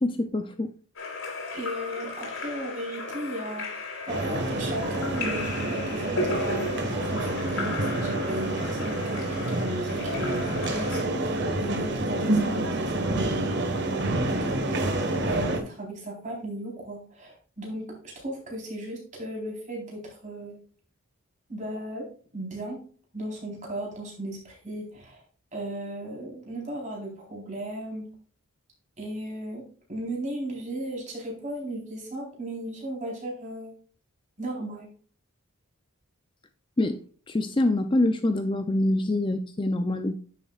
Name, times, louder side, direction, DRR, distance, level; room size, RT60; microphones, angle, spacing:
voice 1, 0.0-0.7 36.8-40.2, left 1 dB, 20° left, 0.5 m, -25 dB
Splash splatter / Drip / Trickle dribble, 1.0-11.0, left 2 dB, 65° left, 3.7 m, -35 dB
voice 2, 1.5-13.6 13.9-14.9 15.3-20.5 21.5-22.1 22.3-22.8 23.1-25.2 25.5-28.1 29.0-29.6 29.9-33.7 34.4-34.9, right 1 dB, 35° right, 4.1 m, -36 dB
sound 1, 4.1-15.6, right 1 dB, 55° right, 1.5 m, -28 dB
10.0 x 7.6 x 2.4 m
head